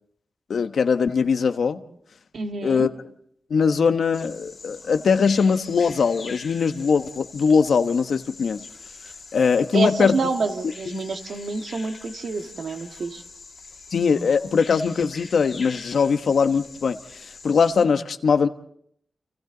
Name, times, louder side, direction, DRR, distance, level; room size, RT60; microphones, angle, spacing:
voice 1, 0.5-1.8 2.6-2.9 3.5-8.7 9.3-10.2 13.9-18.5, left 5 dB, 65° left, 1.1 m, -21 dB
voice 2, 2.3-2.9 9.7-13.2, right 4 dB, 60° right, 2.0 m, -28 dB
Bird vocalization bird call bird song, 4.1-17.8, left 4 dB, 40° left, 2.6 m, -43 dB
29.5 x 29.0 x 4.0 m
wide cardioid pair, 180°, 0 cm